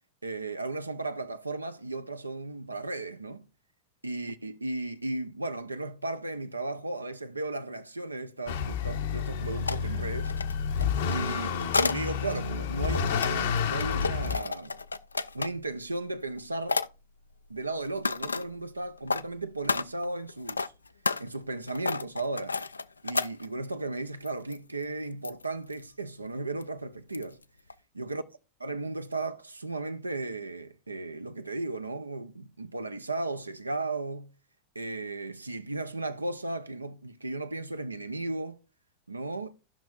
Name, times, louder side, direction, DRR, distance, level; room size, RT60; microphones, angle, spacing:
voice 1, 0.2-3.5 4.0-10.3 11.1-14.7 15.3-16.8 17.5-20.7 21.2-22.6 23.0-27.4 27.9-28.2 28.6-34.3 34.7-38.6 39.1-39.5, right 2 dB, 80° right, 0.6 m, -35 dB
Motor vehicle (road) / Accelerating revving vroom, 8.5-14.4, left 6 dB, 55° left, 0.8 m, -30 dB
sound 1, 9.7-9.8 10.2-12.0 12.7-15.7 16.2-16.4 16.7-16.9 17.8-18.5 19.0-19.2 19.6-23.7 24.3-24.6 24.8-24.9 25.2-25.8 26.6-26.7 27.1-27.4 27.7-27.8, left 4 dB, 80° left, 0.3 m, -31 dB
15.0 x 5.9 x 2.4 m
figure-of-eight pair, 90°, 0 cm